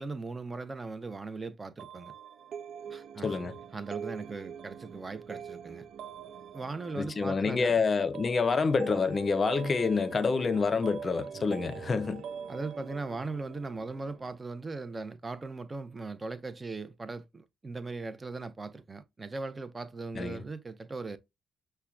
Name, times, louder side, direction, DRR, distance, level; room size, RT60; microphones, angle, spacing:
voice 1, 0.0-2.1 2.9-5.9 6.5-7.8 12.5-21.2, right 3 dB, 25° right, 0.6 m, -39 dB
sound 1, 1.8-14.4, right 7 dB, 70° right, 0.4 m, -44 dB
voice 2, 3.2-3.6 7.0-12.2 20.2-20.4, left 4 dB, 35° left, 0.6 m, -27 dB
5.6 x 2.2 x 2.3 m
cardioid pair, 90°, 0 cm